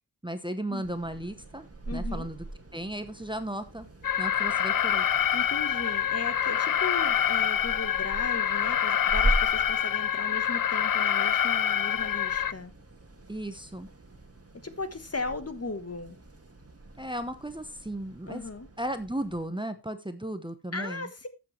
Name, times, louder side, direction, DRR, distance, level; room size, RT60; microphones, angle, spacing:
voice 1, 0.2-1.7 1.9-2.4 2.7-3.9 4.2-5.1 13.3-13.9 17.0-18.4 18.8-21.1, right 1 dB, 10° right, 0.9 m, -35 dB
sound 1, 0.8-19.5, right 1 dB, 35° right, 1.7 m, -39 dB
voice 2, 1.9-2.3 5.3-12.7 14.6-16.2 18.3-18.7 20.7-21.3, left 3 dB, 40° left, 1.3 m, -37 dB
Alarm, 4.0-12.5, left 9 dB, 60° left, 0.5 m, -26 dB
13.0 x 7.4 x 3.2 m
wide cardioid pair, 70°, 39 cm